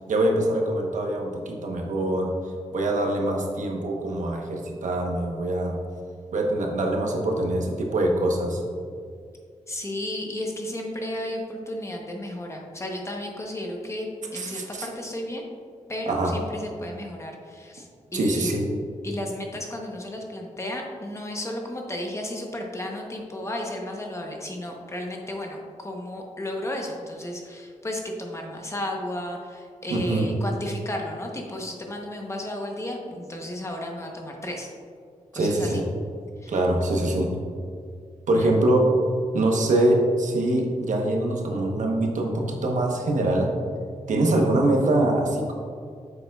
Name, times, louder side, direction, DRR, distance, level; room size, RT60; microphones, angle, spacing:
voice 1, 0.1-2.3 2.7-5.8 6.3-8.6 14.3-14.9 16.1-16.3 18.1-18.7 29.9-30.3 35.3-35.8 36.5-37.3 38.3-38.9 39.3-43.5 44.1-45.5, right 1 dB, 75° right, 1 dB, 1.0 m, -24 dB
voice 2, 9.7-15.4 15.9-18.6 19.0-34.7 35.3-35.8 36.4-36.5 38.3-38.6, left 1 dB, 20° left, 1 dB, 0.9 m, -33 dB
8.4 x 7.0 x 2.4 m, 2.2 s
wide cardioid pair, 125°, 13 cm